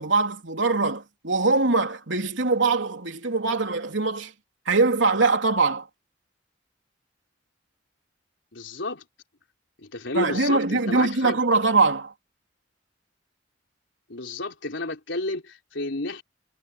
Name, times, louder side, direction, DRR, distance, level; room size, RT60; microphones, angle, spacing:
voice 1, 0.0-4.3 4.7-5.9 10.1-12.1, right 3 dB, 75° right, 3.4 m, -22 dB
voice 2, 8.5-9.0 9.8-11.4 14.1-16.2, left 2 dB, 80° left, 3.8 m, -31 dB
head